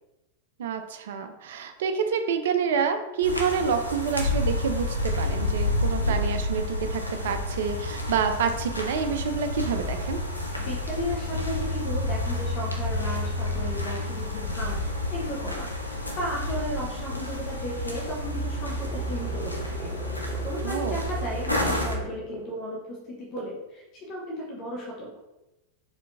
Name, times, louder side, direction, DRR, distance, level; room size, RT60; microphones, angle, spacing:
voice 1, 0.6-10.2 20.6-21.0, right 6 dB, 55° right, 8 dB, 0.4 m, -28 dB
sound 1, 3.2-21.9, left 1 dB, 85° left, 0.6 m, -30 dB
voice 2, 10.6-20.0 20.4-25.2, equal, 35° left, -3 dB, 0.8 m, -35 dB
sound 2, 18.2-22.7, equal, 10° left, 0.5 m, -42 dB
4.2 x 2.6 x 2.6 m, 0.97 s
figure-of-eight pair, 90°, 0 cm